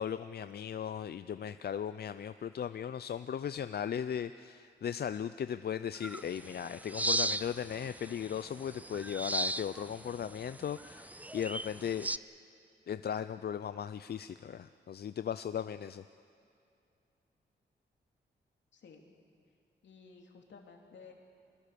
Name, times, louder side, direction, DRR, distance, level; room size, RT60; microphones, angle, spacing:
voice 1, 0.0-12.1 12.9-16.0, left 8 dB, 60° left, 12 dB, 0.5 m, -37 dB
sound 1, 6.0-12.2, right 1 dB, 10° right, 0.5 m, -37 dB
voice 2, 18.7-19.0 19.8-21.1, left 5 dB, 85° left, 2 dB, 2.9 m, -55 dB
25.0 x 21.5 x 6.8 m, 2.5 s
cardioid pair, 75°, 18 cm